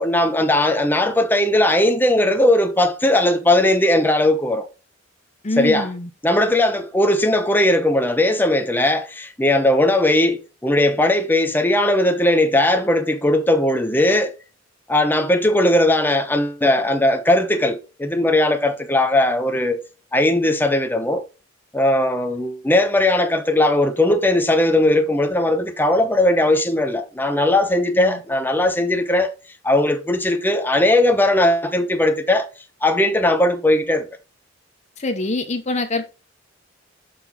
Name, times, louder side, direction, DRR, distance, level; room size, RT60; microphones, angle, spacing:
voice 1, 0.0-4.7 5.6-5.9 6.2-14.3 14.9-19.8 20.1-21.2 21.7-29.3 29.6-32.5 32.8-34.1, left 1 dB, 10° left, 0.9 m, -18 dB
voice 2, 5.4-6.1 28.0-28.2 35.0-36.1, left 2 dB, 35° left, 0.8 m, -24 dB
6.6 x 6.1 x 3.6 m
head